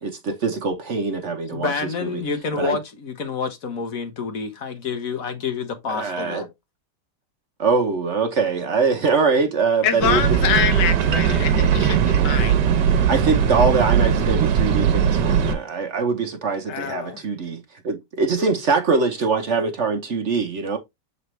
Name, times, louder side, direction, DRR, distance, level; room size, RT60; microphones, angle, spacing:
voice 1, 0.0-1.7 2.0-2.2 2.6-2.8 5.9-6.4 7.6-10.2 13.1-20.8, right 4 dB, 50° right, 1.0 m, -23 dB
voice 2, 1.5-6.5 18.4-18.5, left 5 dB, 55° left, 1.5 m, -28 dB
voice 3, 9.8-12.6 16.7-17.2, left 8 dB, 85° left, 1.5 m, -25 dB
sound 1, 10.0-15.5, right 7 dB, 80° right, 1.5 m, -19 dB
7.4 x 4.1 x 3.2 m
omnidirectional pair, 1.8 m